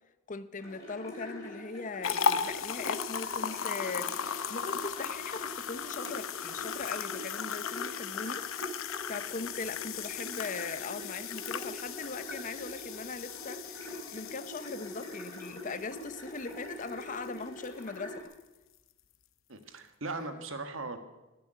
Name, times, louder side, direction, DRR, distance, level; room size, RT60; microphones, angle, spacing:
voice 1, 0.3-8.8 9.1-18.3 20.2-20.5, left 4 dB, 40° left, 0.7 m, -40 dB
sound 1, 0.6-18.2, left 1 dB, 15° left, 4.6 m, -44 dB
sound 2, 2.0-17.3 17.6-17.8 18.3-18.4, left 7 dB, 90° left, 0.8 m, -36 dB
voice 2, 19.5-21.0, right 3 dB, 75° right, 1.5 m, -38 dB
17.5 x 7.1 x 9.1 m
head